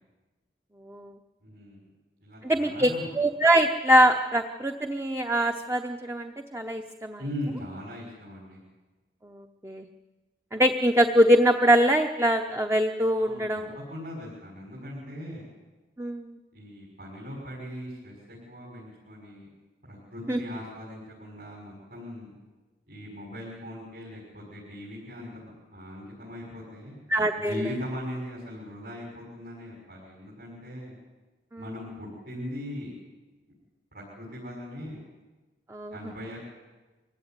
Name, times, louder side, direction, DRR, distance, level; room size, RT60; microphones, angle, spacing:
voice 1, 1.4-1.9 2.2-3.1 7.2-8.6 13.2-13.4 13.7-15.5 16.5-19.5 19.8-22.3 22.9-27.0 27.4-31.0 31.6-32.9 33.9-35.0 35.9-36.4, left 1 dB, 55° right, -4 dB, 6.3 m, -39 dB
voice 2, 2.4-7.2 9.2-9.9 10.5-13.8 16.0-16.4 20.3-20.4 27.1-27.7 31.5-31.6 35.7-35.9, equal, 15° right, 5 dB, 0.9 m, -23 dB
24.0 x 16.5 x 9.4 m, 1.2 s
head